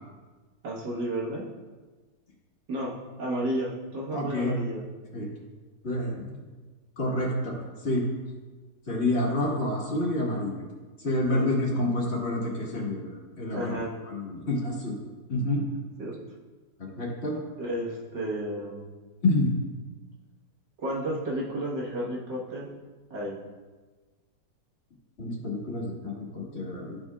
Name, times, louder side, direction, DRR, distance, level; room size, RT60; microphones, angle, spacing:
voice 1, 0.6-1.5 2.7-2.9 3.2-4.8 11.3-11.8 13.5-13.9 16.0-16.2 17.6-18.9 20.8-22.7 23.1-23.4, right 1 dB, 75° right, -4 dB, 2.1 m, -32 dB
voice 2, 4.1-4.6 5.1-5.3 5.8-6.4 7.0-7.6 7.8-8.0 8.9-10.6 11.0-13.7 14.1-15.0 15.3-15.6 16.8-17.4 19.2-19.6 25.2-27.0, left 1 dB, 40° left, -4 dB, 1.9 m, -28 dB
13.5 x 5.3 x 2.4 m, 1.3 s
omnidirectional pair, 1.9 m